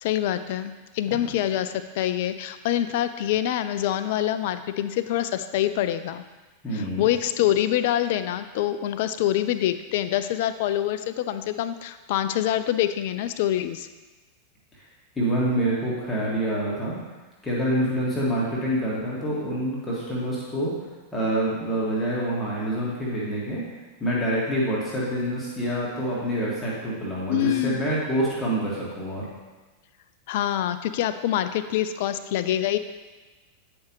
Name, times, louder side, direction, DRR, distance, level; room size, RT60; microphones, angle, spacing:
voice 1, 0.0-6.2 6.7-13.9 27.3-27.8 30.3-32.8, left 12 dB, 50° left, 11 dB, 0.4 m, -25 dB
voice 2, 6.6-7.0 15.2-17.0 17.4-20.7 21.1-23.6 24.0-29.3, right 1 dB, 10° left, -7 dB, 2.0 m, -26 dB
9.3 x 5.2 x 3.1 m, 1.2 s
figure-of-eight pair, 90°, 0 cm